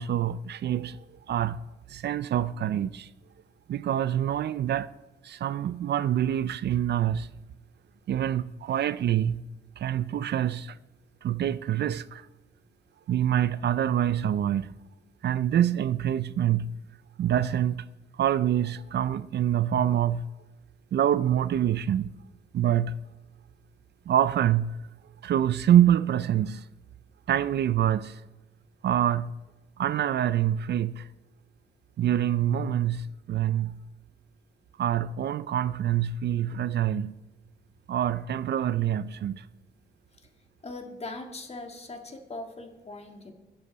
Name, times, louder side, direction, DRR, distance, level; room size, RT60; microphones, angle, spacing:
voice 1, 0.0-3.1 3.7-4.9 5.2-7.3 8.1-9.4 9.8-10.8 11.2-12.3 13.1-14.8 15.2-16.7 17.2-17.9 18.2-20.3 20.9-22.1 22.5-23.0 24.1-24.8 25.2-26.6 27.3-28.2 28.8-29.3 29.8-31.1 32.0-33.8 34.8-37.2 37.9-39.5, right 10 dB, 65° right, 0.4 m, -26 dB
voice 2, 40.6-43.3, left 2 dB, 35° left, 1.8 m, -40 dB
22.0 x 7.5 x 4.1 m
cardioid pair, 105°, 19 cm